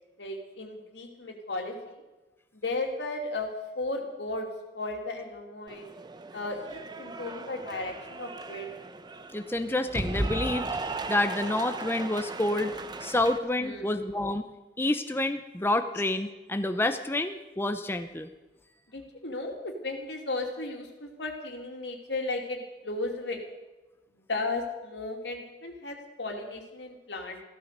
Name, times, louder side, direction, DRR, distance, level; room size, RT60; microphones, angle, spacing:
voice 1, 0.2-2.0 2.6-3.5 3.8-4.5 4.7-5.9 6.3-8.7 13.6-14.0 18.9-23.4 24.3-27.4, left 2 dB, 85° left, 2 dB, 2.7 m, -35 dB
Cheering / Applause, 5.7-13.4, right 2 dB, 25° right, 0.9 m, -36 dB
voice 2, 9.3-10.7 11.1-12.7 13.0-14.4 14.8-18.3, left 1 dB, 15° left, 8 dB, 0.7 m, -28 dB
15.5 x 13.0 x 6.7 m, 1.1 s
head